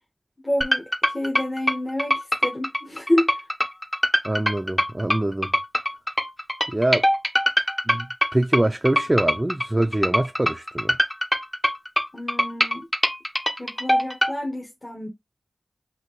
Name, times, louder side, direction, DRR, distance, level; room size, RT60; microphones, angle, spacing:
voice 1, 0.4-3.4 12.1-12.9 13.6-15.1, left 1 dB, 30° left, 1.2 m, -28 dB
sound 1, 0.6-14.3, equal, 10° left, 0.7 m, -23 dB
voice 2, 4.2-5.5 6.7-7.1 7.9-8.1 8.3-11.0, right 1 dB, 25° right, 0.4 m, -24 dB
5.5 x 2.6 x 3.0 m
cardioid pair, 50°, 0 cm